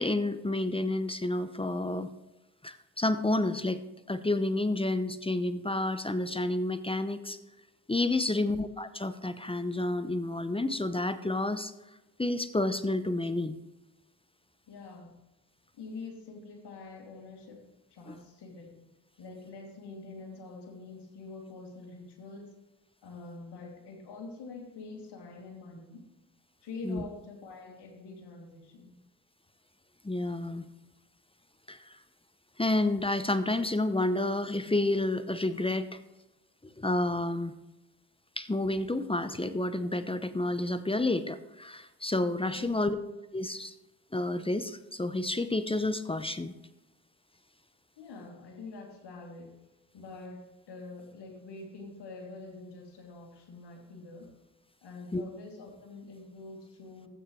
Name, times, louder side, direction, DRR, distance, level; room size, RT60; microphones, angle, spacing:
voice 1, 0.0-2.1 2.6-3.8 4.1-7.4 7.9-11.7 12.2-13.6 26.8-27.0 30.0-30.7 31.7-31.9 32.6-36.0 36.6-37.5 38.4-43.0 43.3-43.7 44.1-46.5 55.1-55.2, left 2 dB, 15° left, 12 dB, 0.8 m, -30 dB
voice 2, 14.7-15.2 15.7-18.9 19.2-22.6 23.0-26.0 26.6-28.9 42.6-43.0 48.0-49.5 49.9-54.3 54.8-57.1, left 3 dB, 70° left, 1 dB, 2.8 m, -45 dB
13.0 x 8.6 x 3.2 m, 1.0 s
supercardioid pair, 50°, 42 cm